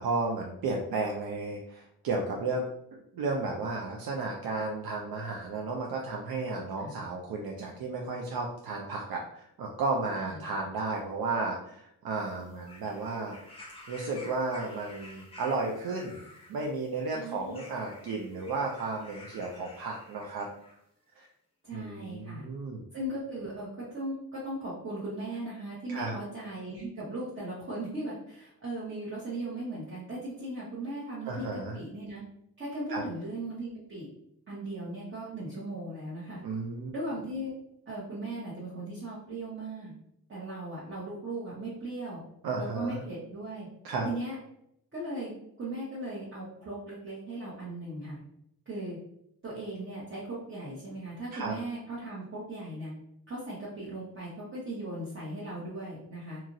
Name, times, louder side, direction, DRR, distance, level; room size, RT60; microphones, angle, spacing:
voice 1, 0.0-2.7 3.1-13.4 13.9-16.2 16.5-20.5 21.2-21.3 21.7-22.8 25.9-26.1 31.3-31.8 32.9-33.0 36.4-36.9 42.4-43.0 43.8-44.1 51.3-51.5, right 3 dB, 70° right, 0 dB, 0.5 m, -33 dB
sound 1, 12.2-20.8 21.7-21.8, left 2 dB, 15° left, 0.6 m, -51 dB
voice 2, 17.1-17.6 21.6-22.5 22.9-23.7 23.9-32.2 32.6-34.1 34.5-36.4 36.9-37.5 37.9-39.9 40.3-42.2 42.5-43.7 44.0-44.4 44.9-45.3 45.6-48.2 48.7-49.0 49.4-52.9 53.3-56.4, right 1 dB, 35° right, -8 dB, 0.9 m, -38 dB
2.9 x 2.4 x 2.6 m, 0.75 s
cardioid pair, 115°, 37 cm